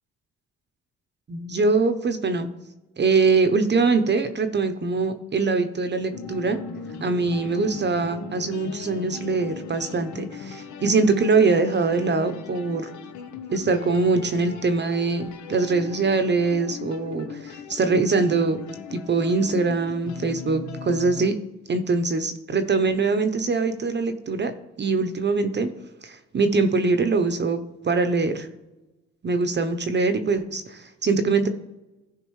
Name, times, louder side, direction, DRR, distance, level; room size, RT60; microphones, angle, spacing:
voice 1, 1.3-2.5 3.0-6.6 7.0-12.9 13.5-18.6 18.9-21.4 21.7-24.5 24.8-25.7 26.0-28.5 29.2-31.5, right 4 dB, 35° right, 9 dB, 0.8 m, -23 dB
sound 1, 6.1-21.3, left 6 dB, 70° left, 0.9 m, -38 dB
14.5 x 5.1 x 3.2 m, 1.0 s
cardioid pair, 90°, 30 cm